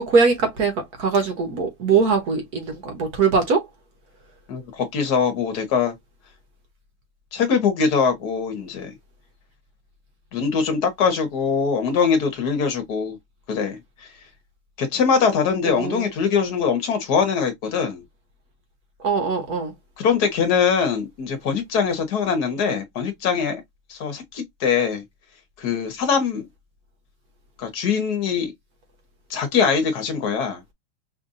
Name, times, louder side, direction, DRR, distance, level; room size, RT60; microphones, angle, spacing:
voice 1, 0.0-3.6 15.6-16.1 19.0-19.7, right 5 dB, 50° right, 1.3 m, -21 dB
voice 2, 4.5-5.9 7.3-8.9 10.3-13.2 13.5-13.8 14.8-18.0 20.0-23.6 23.9-25.0 25.6-26.4 27.6-28.5 29.3-30.6, left 6 dB, 50° left, 1.5 m, -22 dB
5.5 x 2.5 x 2.6 m
omnidirectional pair, 2.4 m